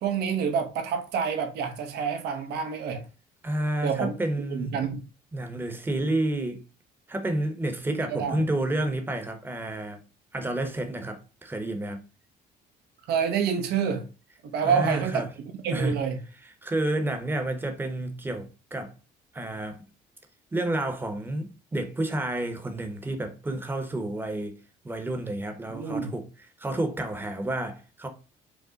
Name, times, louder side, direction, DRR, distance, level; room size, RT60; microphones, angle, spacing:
voice 1, 0.0-3.1 3.8-4.1 4.5-5.0 8.1-8.5 13.1-14.1 14.4-15.3 15.6-16.2 25.7-26.1, right 6 dB, 75° right, 0.8 m, -27 dB
voice 2, 3.4-4.7 5.3-6.6 7.1-10.0 10.3-12.0 14.6-15.3 15.7-16.0 16.6-18.9 19.3-19.8 20.5-24.6 24.8-26.3 26.6-28.1, right 1 dB, 10° right, 0.8 m, -30 dB
4.9 x 2.1 x 3.9 m
cardioid pair, 110°, 17 cm